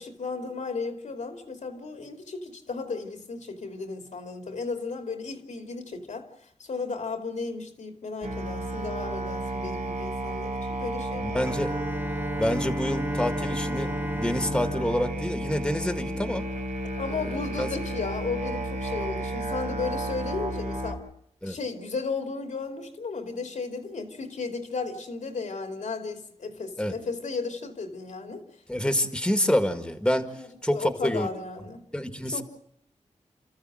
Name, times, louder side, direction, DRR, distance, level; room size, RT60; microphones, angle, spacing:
voice 1, 0.0-6.3 6.6-11.4 17.0-21.0 21.4-28.5 30.4-31.8 32.3-32.4, left 4 dB, 85° left, 2.7 m, -34 dB
Musical instrument, 8.2-20.9, right 1 dB, 75° right, 3.5 m, -32 dB
voice 2, 11.2-11.7 12.4-16.5 17.6-17.7 21.4-21.6 26.8-26.9 28.7-30.3 30.6-31.3 31.9-32.4, left 1 dB, 5° left, 1.8 m, -27 dB
Bowed string instrument, 11.4-16.4, right 1 dB, 15° right, 0.8 m, -34 dB
29.5 x 14.0 x 7.8 m
wide cardioid pair, 90°, 12 cm